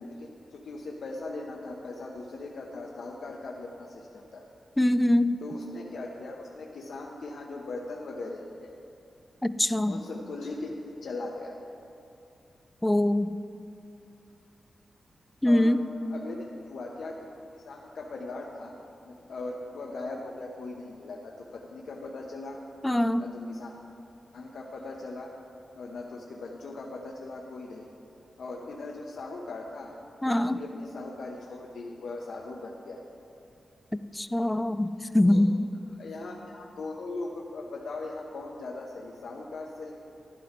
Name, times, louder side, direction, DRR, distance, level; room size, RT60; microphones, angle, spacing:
voice 1, 0.0-4.4 5.4-8.7 9.9-10.7 11.0-11.6 15.4-15.8 16.0-17.2 17.5-18.7 19.0-22.6 23.2-23.7 24.3-25.3 25.7-27.9 28.4-29.9 30.3-33.0 35.2-35.4 35.9-39.9, left 3 dB, 75° left, -1 dB, 0.8 m, -39 dB
voice 2, 4.8-5.4 9.4-10.0 12.8-13.3 15.4-15.8 22.8-23.2 30.2-30.6 34.2-34.9 35.1-35.6, left 1 dB, 10° left, 13 dB, 0.4 m, -23 dB
11.5 x 11.5 x 3.7 m, 2.7 s
wide cardioid pair, 100°, 0 cm